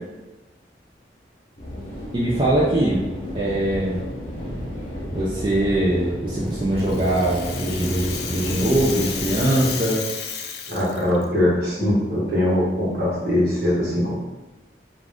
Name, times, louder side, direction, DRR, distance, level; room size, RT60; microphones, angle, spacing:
sound 1, 1.6-9.7, equal, 45° left, 0.8 m, -32 dB
voice 1, 2.1-4.0 5.1-10.1, right 1 dB, 25° right, -7 dB, 0.4 m, -22 dB
Rattle (instrument), 6.5-11.2, left 7 dB, 60° left, 0.3 m, -32 dB
voice 2, 10.7-14.1, left 1 dB, 55° right, -6 dB, 1.1 m, -21 dB
2.4 x 2.3 x 3.4 m, 1.1 s
head